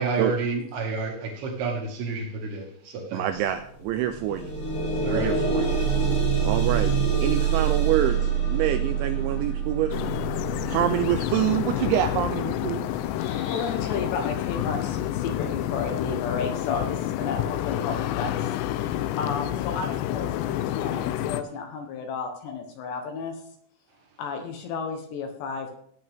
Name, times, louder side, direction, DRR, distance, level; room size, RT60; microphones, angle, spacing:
voice 1, 0.0-3.4 5.0-5.3, right 4 dB, 60° right, 1 dB, 3.7 m, -30 dB
voice 2, 3.1-4.5 5.1-5.7 6.4-6.9 7.2-10.0 10.7-12.9, right 11 dB, 85° right, 8 dB, 2.7 m, -26 dB
sound 1, 3.3-3.5 3.8-14.8 15.6-15.7 16.2-16.3, right 6 dB, 45° left, 3.4 m, -27 dB
sound 2, 9.9-21.4, left 12 dB, 85° left, 2.5 m, -29 dB
voice 3, 13.2-23.4 24.2-25.7, left 5 dB, 70° left, 4 dB, 3.0 m, -33 dB
17.5 x 8.6 x 3.6 m, 0.65 s
omnidirectional pair, 5.8 m